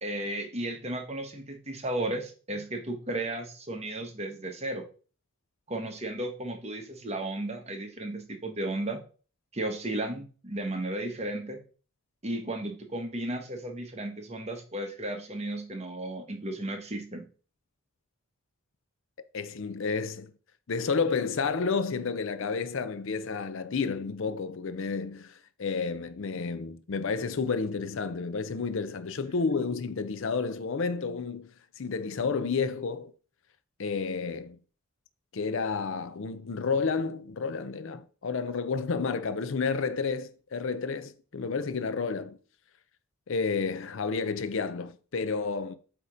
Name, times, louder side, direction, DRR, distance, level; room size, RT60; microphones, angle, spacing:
voice 1, 0.0-4.8 5.7-9.0 9.5-11.6 12.2-17.3, right 1 dB, 30° right, 1.0 m, -34 dB
voice 2, 19.3-20.3 20.7-31.5 31.8-33.1 33.8-34.6 35.3-42.4 43.3-45.7, left 5 dB, 60° left, 0.5 m, -31 dB
8.2 x 2.9 x 5.0 m
head